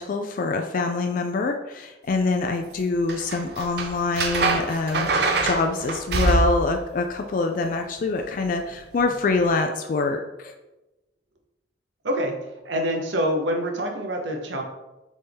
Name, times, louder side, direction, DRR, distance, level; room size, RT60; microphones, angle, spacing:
voice 1, 0.0-10.5, left 3 dB, 45° left, 4 dB, 0.3 m, -25 dB
sound 1, 3.1-6.8 9.0-9.2, right 3 dB, 60° right, 0.5 m, -24 dB
voice 2, 12.6-14.6, equal, 85° right, 2 dB, 0.8 m, -26 dB
4.1 x 3.4 x 3.4 m, 1.0 s
head